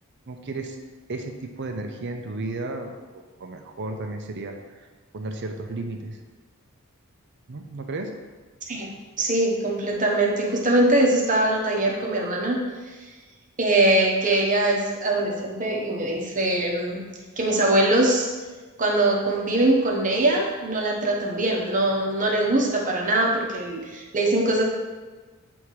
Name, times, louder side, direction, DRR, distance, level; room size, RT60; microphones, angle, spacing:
voice 1, 0.3-0.8 1.1-4.9 5.1-6.2 7.5-8.1, right 2 dB, 55° right, 4 dB, 0.7 m, -33 dB
voice 2, 9.2-12.6 13.6-17.0 17.4-18.3 18.8-24.6, right 1 dB, 35° right, -1 dB, 1.1 m, -22 dB
8.5 x 3.6 x 4.7 m, 1.3 s
head